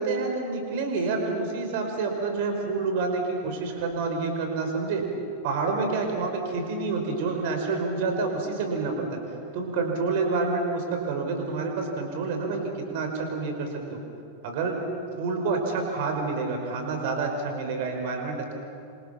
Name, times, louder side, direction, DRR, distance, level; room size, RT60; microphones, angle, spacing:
voice 1, 0.0-5.0 5.4-9.1 9.5-12.6 12.9-14.0 14.4-14.7 15.2-18.5, right 4 dB, 50° right, 3 dB, 5.3 m, -28 dB
28.0 x 27.5 x 6.0 m, 2.5 s
figure-of-eight pair, 90°, 0 cm